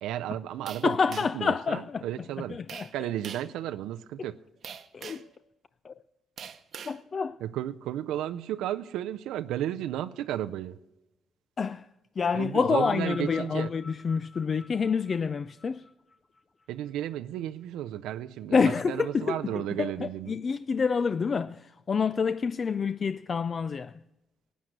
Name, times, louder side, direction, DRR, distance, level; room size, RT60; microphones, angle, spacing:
voice 1, 0.0-1.0 1.3-2.6 2.9-4.4 7.4-10.8 12.3-13.7 16.7-18.6 18.9-20.3, right 12 dB, 90° right, 0.4 m, -33 dB
sound 1, 0.7-1.5 2.7-2.9 3.2-3.5 4.6-5.3 6.4-7.0, right 7 dB, 60° right, 0.8 m, -43 dB
voice 2, 0.8-2.1 2.5-3.1 4.9-5.2 5.8-5.9 6.9-7.4 11.6-11.9 12.2-15.8 18.5-24.0, left 5 dB, 40° left, 0.3 m, -28 dB
sound 2, 12.6-17.1 18.0-18.1, left 3 dB, 25° left, 0.8 m, -48 dB
13.0 x 9.3 x 6.4 m
cardioid pair, 90°, 0 cm